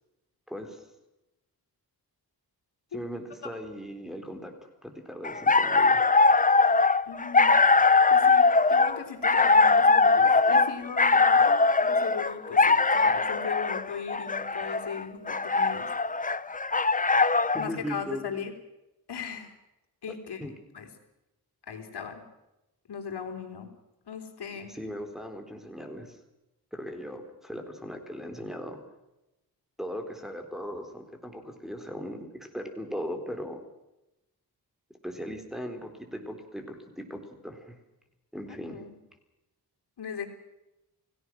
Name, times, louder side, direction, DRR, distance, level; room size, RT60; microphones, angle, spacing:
voice 1, 0.5-0.8 2.9-4.5 4.8-6.0 17.5-18.2 20.4-20.5 24.7-26.2 26.7-28.8 29.8-33.6 35.0-37.8 38.3-38.8, equal, ahead, 3 dB, 3.9 m, -38 dB
sound 1, 5.2-17.7, left 4 dB, 20° left, 0.7 m, -21 dB
voice 2, 7.1-7.6 8.1-15.9 17.6-18.5 19.1-19.6 20.0-20.9 21.7-22.2 22.9-23.7 24.1-24.7 38.5-39.0 40.0-40.3, left 6 dB, 80° left, 5 dB, 3.7 m, -38 dB
29.5 x 17.5 x 6.2 m, 0.94 s
wide cardioid pair, 110°, 39 cm